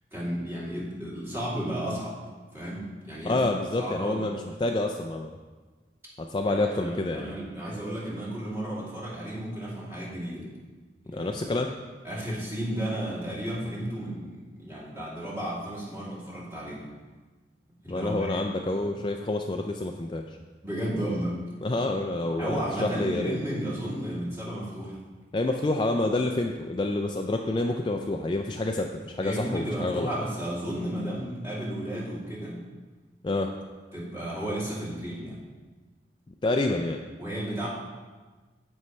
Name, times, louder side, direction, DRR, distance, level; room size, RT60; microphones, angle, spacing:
voice 1, 0.1-2.1 2.5-3.4 3.8-4.3 6.5-10.4 11.1-11.4 12.0-16.8 17.8-18.5 18.8-18.9 20.6-21.4 22.4-25.0 29.2-32.6 33.9-35.4 37.2-37.7, right 1 dB, 15° right, -8 dB, 2.8 m, -33 dB
voice 2, 3.2-5.4 6.2-7.3 11.1-11.7 17.9-20.4 21.6-23.4 25.3-30.1 33.2-33.5 36.4-37.0, left 2 dB, 25° left, 3 dB, 0.4 m, -28 dB
15.5 x 5.4 x 3.2 m, 1.3 s
head